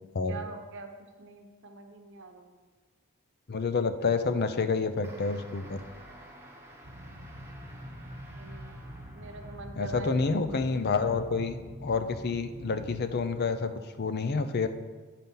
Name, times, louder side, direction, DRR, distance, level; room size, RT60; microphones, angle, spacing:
voice 1, 0.3-0.9 1.2-2.6 8.4-8.8 9.1-10.2 10.5-11.0, right 3 dB, 60° right, 5 dB, 0.9 m, -44 dB
voice 2, 3.5-5.8 9.8-11.6 11.8-13.7 14.0-14.7, left 4 dB, 45° left, 9 dB, 0.5 m, -28 dB
sound 1, 5.0-10.1 10.8-11.3, right 1 dB, 10° right, 1.0 m, -52 dB
sound 2, 6.8-13.0, equal, 35° right, 1.0 m, -45 dB
10.5 x 4.2 x 5.5 m, 1.4 s
head